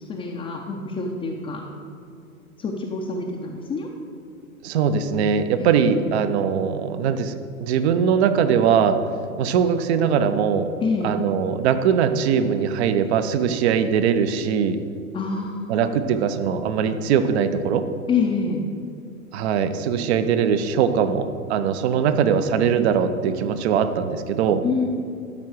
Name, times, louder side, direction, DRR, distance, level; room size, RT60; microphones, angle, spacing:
voice 1, 0.1-1.6 2.6-3.9 5.6-5.8 10.8-11.1 15.1-15.7 18.1-18.6 24.6-24.9, left 4 dB, 10° left, -1 dB, 0.6 m, -26 dB
voice 2, 4.6-9.0 9.4-10.7 11.0-14.8 15.7-17.9 19.3-24.6, right 7 dB, 50° right, 10 dB, 0.8 m, -21 dB
12.5 x 4.7 x 6.3 m, 2.5 s
hypercardioid pair, 110°, 43 cm